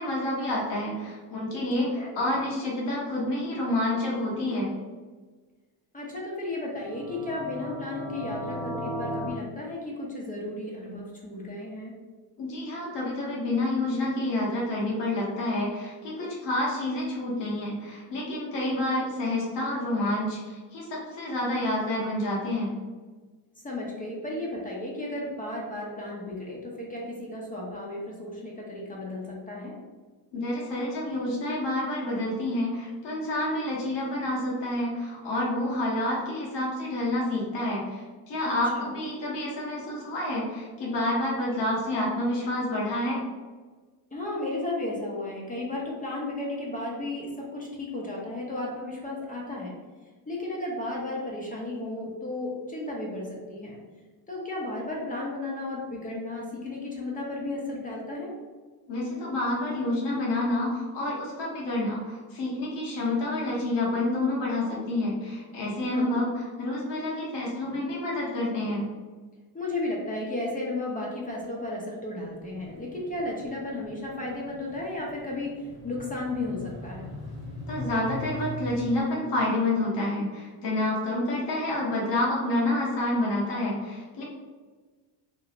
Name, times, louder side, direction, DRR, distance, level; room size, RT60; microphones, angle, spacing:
voice 1, 0.0-4.7 12.4-22.7 30.3-43.2 58.9-68.8 77.7-84.2, left 1 dB, 65° left, -4 dB, 1.1 m, -28 dB
voice 2, 1.8-2.1 5.9-11.9 23.6-29.7 38.4-38.9 44.1-49.7 50.3-53.8 54.3-58.3 65.8-66.2 69.5-77.0, left 2 dB, 20° left, -3 dB, 0.6 m, -34 dB
sound 1, 6.7-9.3, equal, 40° right, 0.7 m, -35 dB
sound 2, 72.2-79.0, left 1 dB, 35° left, 1.0 m, -41 dB
2.9 x 2.0 x 2.5 m, 1.4 s
cardioid pair, 95°, 45 cm